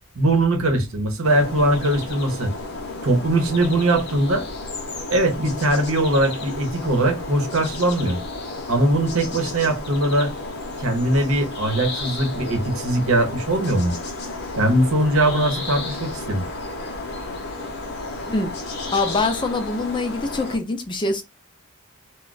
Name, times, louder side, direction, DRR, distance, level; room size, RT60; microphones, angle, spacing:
voice 1, 0.2-2.5 3.0-4.5 5.1-8.2 8.7-10.3 10.8-13.9 14.6-16.4, right 1 dB, 80° right, 0.9 m, -21 dB
sound 1, 1.2-20.6, left 2 dB, 50° left, 0.7 m, -32 dB
voice 2, 18.9-21.2, left 3 dB, 20° left, 0.4 m, -24 dB
2.3 x 2.2 x 3.9 m
head